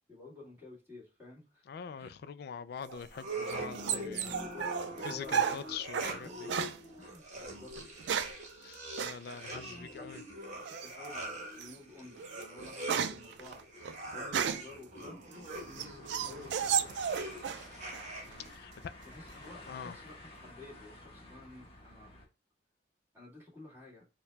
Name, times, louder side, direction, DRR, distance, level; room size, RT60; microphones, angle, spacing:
voice 1, 0.1-1.6 2.0-2.1 3.8-4.6 4.9-5.7 6.1-6.3 7.0-8.0 9.4-10.2 10.5-15.2 15.7-17.1 18.2-18.5 19.0-22.2 23.1-24.0, left 3 dB, 15° right, 2.1 m, -51 dB
voice 2, 1.7-4.3 5.0-6.5 8.6-10.2 16.2-16.3 18.5-18.7 19.5-20.0, left 7 dB, 60° left, 0.3 m, -44 dB
sound 1, 2.9-6.2 6.5-6.8 7.7-8.4 9.0-9.2 10.7-11.1 11.6-11.8 12.2-14.8 15.3-17.7 17.9-18.5, right 7 dB, 70° right, 0.4 m, -34 dB
sound 2, 3.1-18.5, right 1 dB, 40° right, 1.1 m, -43 dB
sound 3, 15.5-22.2, left 1 dB, 35° left, 0.9 m, -52 dB
4.5 x 2.2 x 3.2 m
head